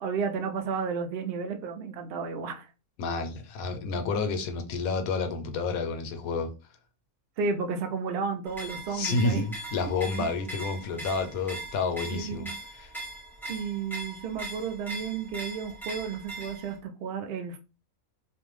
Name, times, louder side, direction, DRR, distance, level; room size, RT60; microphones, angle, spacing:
voice 1, 0.0-2.7 7.4-9.4 10.2-10.3 12.1-12.6 13.5-17.6, right 5 dB, 65° right, 0.6 m, -32 dB
voice 2, 3.0-6.5 8.9-12.5 12.8-12.9, left 4 dB, 90° left, 1.0 m, -30 dB
sound 1, 8.5-16.8, right 2 dB, ahead, 0.5 m, -40 dB
2.5 x 2.2 x 3.1 m
omnidirectional pair, 1.4 m